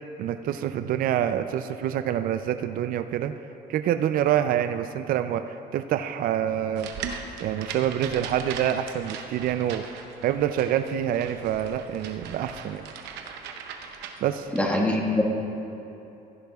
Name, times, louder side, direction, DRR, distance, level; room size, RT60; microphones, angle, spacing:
voice 1, 0.2-3.3 3.7-6.9 7.4-9.8 10.2-12.8 14.2-14.5, right 10 dB, 60° right, 9 dB, 0.4 m, -26 dB
sound 1, 6.8-14.7, right 6 dB, 90° right, 0.8 m, -39 dB
voice 2, 14.5-15.2, left 1 dB, 10° left, -1 dB, 1.5 m, -23 dB
15.0 x 10.5 x 2.3 m, 2.9 s
cardioid pair, 110°, 17 cm